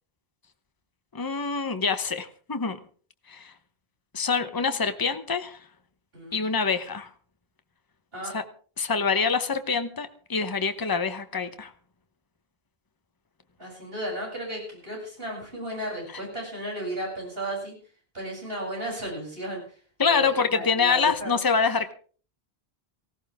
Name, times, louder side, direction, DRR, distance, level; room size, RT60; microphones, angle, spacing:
voice 1, 1.1-2.8 3.3-3.5 4.1-5.7 6.3-7.1 8.3-8.4 8.8-11.7 20.0-21.9, left 5 dB, 20° left, 9 dB, 1.0 m, -25 dB
voice 2, 6.1-6.5 8.1-8.3 13.6-17.7 18.1-19.8 20.0-21.4, right 1 dB, 70° right, -2 dB, 8.3 m, -34 dB
18.5 x 16.5 x 3.6 m, 0.41 s
omnidirectional pair, 1.0 m